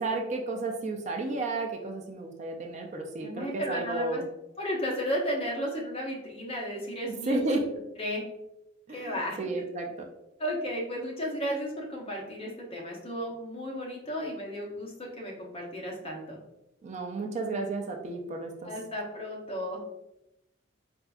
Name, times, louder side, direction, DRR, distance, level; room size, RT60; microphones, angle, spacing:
voice 1, 0.0-4.3 7.1-7.7 8.9-9.9 16.8-18.7, right 2 dB, 35° right, 2 dB, 0.4 m, -32 dB
voice 2, 3.2-4.2 4.6-7.4 8.0-8.2 8.9-9.4 10.4-16.4 18.6-19.8, equal, 30° left, -2 dB, 0.8 m, -34 dB
4.4 x 2.5 x 2.3 m, 0.87 s
head